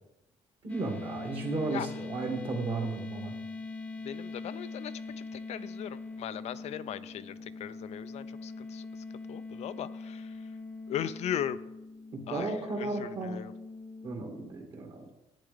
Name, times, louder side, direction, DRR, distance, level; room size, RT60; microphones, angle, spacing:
voice 1, 0.6-3.3 12.1-13.4 14.0-15.1, right 3 dB, 50° right, 1 dB, 2.2 m, -34 dB
sound 1, 0.7-14.5, left 3 dB, 10° left, 0.8 m, -42 dB
voice 2, 4.0-8.9 9.3-10.4 10.9-11.6 12.3-13.5, left 10 dB, 65° left, 13 dB, 0.4 m, -38 dB
10.5 x 9.5 x 3.4 m, 0.95 s
cardioid pair, 125°, 12 cm